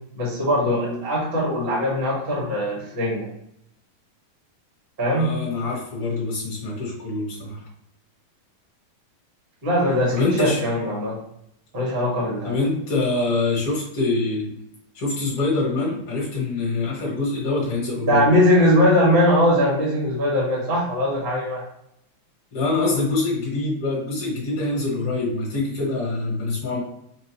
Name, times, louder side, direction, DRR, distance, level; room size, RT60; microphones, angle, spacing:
voice 1, 0.1-3.3 5.0-5.3 9.6-11.2 11.7-12.6 18.1-21.6, equal, 90° right, -6 dB, 0.5 m, -20 dB
voice 2, 5.2-7.6 10.1-10.6 12.4-14.5 15.0-18.2 22.5-26.8, left 3 dB, 50° left, -5 dB, 2.0 m, -25 dB
6.1 x 2.6 x 2.9 m, 0.77 s
omnidirectional pair, 4.3 m